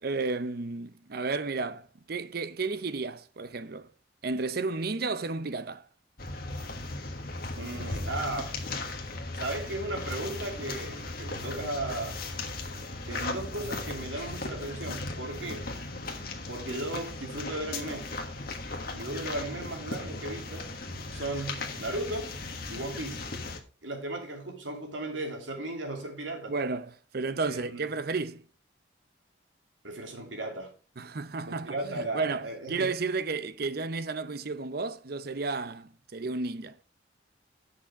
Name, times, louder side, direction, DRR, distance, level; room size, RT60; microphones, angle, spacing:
voice 1, 0.0-3.9 4.2-5.9 26.5-28.4 31.0-36.8, right 3 dB, 50° right, 0.6 m, -32 dB
sound 1, 6.2-23.6, left 2 dB, 50° left, 1.4 m, -37 dB
voice 2, 7.6-8.7 9.3-12.2 13.1-15.7 16.5-18.1 18.9-20.7 21.1-22.3 22.7-23.2 23.8-26.5 27.5-27.9 29.8-30.7 31.4-32.9, right 2 dB, 85° right, 2.8 m, -36 dB
8.5 x 6.2 x 5.1 m
head